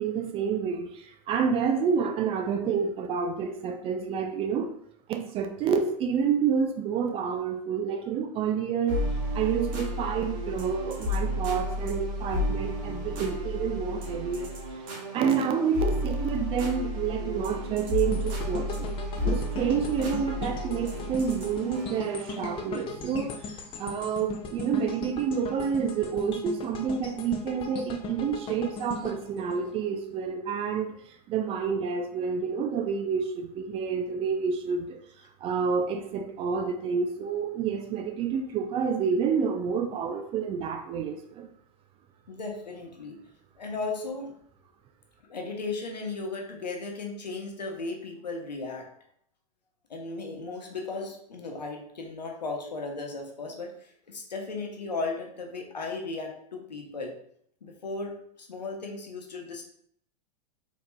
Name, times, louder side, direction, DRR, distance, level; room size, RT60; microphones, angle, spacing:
voice 1, 0.0-4.7 5.1-9.0 9.3-14.6 15.1-18.9 19.2-23.5 23.8-30.9 31.3-35.0 35.4-41.5, right 6 dB, 25° right, 0.4 m, -29 dB
sound 1, 8.9-22.7, left 1 dB, 55° right, 1.2 m, -32 dB
sound 2, 18.1-30.3 30.7-30.9, left 5 dB, 25° left, 0.5 m, -39 dB
voice 2, 22.8-23.2 42.3-43.2 43.6-44.3 45.2-48.9 49.9-57.1 57.6-59.6, left 3 dB, 85° left, 0.8 m, -36 dB
4.5 x 3.0 x 2.2 m
hypercardioid pair, 100°, 21 cm